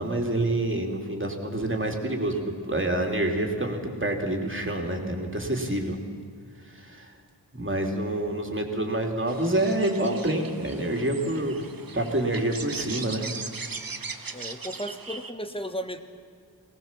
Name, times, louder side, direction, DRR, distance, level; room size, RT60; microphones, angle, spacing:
voice 1, 0.0-6.0 6.7-7.1 7.5-11.6 11.9-13.2, right 1 dB, 30° right, 2 dB, 2.9 m, -27 dB
sound 1, 9.3-15.3, right 4 dB, 55° right, 1.2 m, -39 dB
voice 2, 14.3-16.0, equal, 15° left, 7 dB, 1.4 m, -35 dB
21.5 x 18.0 x 7.4 m, 2.2 s
wide cardioid pair, 55°, 42 cm